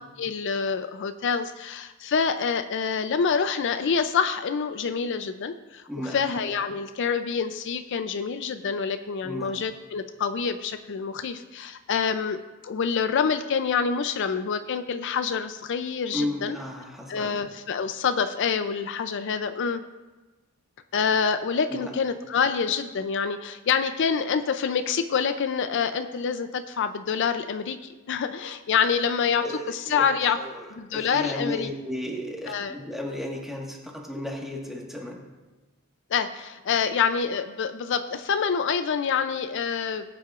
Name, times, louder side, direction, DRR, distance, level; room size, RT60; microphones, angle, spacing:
voice 1, 0.2-5.8 6.1-16.6 17.1-19.8 20.9-30.4 30.7-31.7 32.5-32.7 36.1-40.0, left 6 dB, 60° left, 9 dB, 0.4 m, -26 dB
voice 2, 5.9-6.2 9.2-9.6 16.1-17.5 21.7-21.9 29.4-35.2, left 1 dB, ahead, -1 dB, 1.5 m, -34 dB
19.5 x 8.5 x 2.5 m, 1.2 s
head